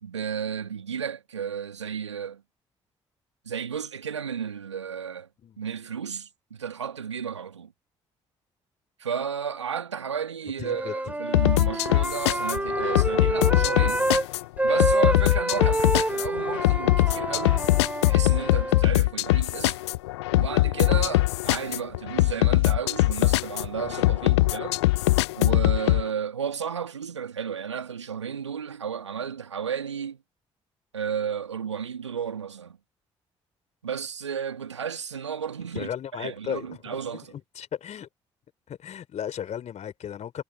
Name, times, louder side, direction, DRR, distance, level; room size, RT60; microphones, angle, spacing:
voice 1, 0.0-2.4 3.5-5.3 5.6-7.7 9.0-14.1 14.6-17.7 18.0-19.8 20.3-24.8 25.3-30.2 30.9-32.8 33.8-35.9 36.2-37.3, right 7 dB, 85° right, 1.9 m, -33 dB
voice 2, 10.6-10.9 35.7-38.1 38.7-40.4, left 9 dB, 50° left, 3.6 m, -35 dB
Wind instrument woodwind instrument, 10.6-14.2 14.6-18.9, right 1 dB, 10° right, 4.0 m, -27 dB
sound 1, 11.3-26.0, left 19 dB, 75° left, 0.5 m, -22 dB
figure-of-eight pair, 40°, 14 cm